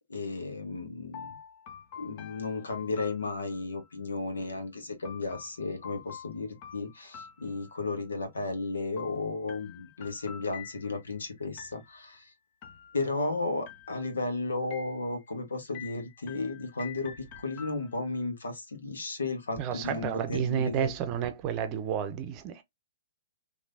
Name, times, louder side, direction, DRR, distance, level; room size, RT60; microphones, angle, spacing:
voice 1, 0.1-1.4 1.9-12.3 12.9-20.9, left 3 dB, 80° left, 1.1 m, -34 dB
sound 1, 1.1-3.9 5.0-8.1 9.0-11.2 11.6-12.2 12.6-13.3 13.7-14.3 14.7-15.4 15.7-18.2, left 8 dB, 40° left, 0.6 m, -48 dB
voice 2, 19.6-22.6, right 8 dB, 30° right, 0.6 m, -31 dB
3.2 x 2.7 x 2.5 m
hypercardioid pair, 130°, 0 cm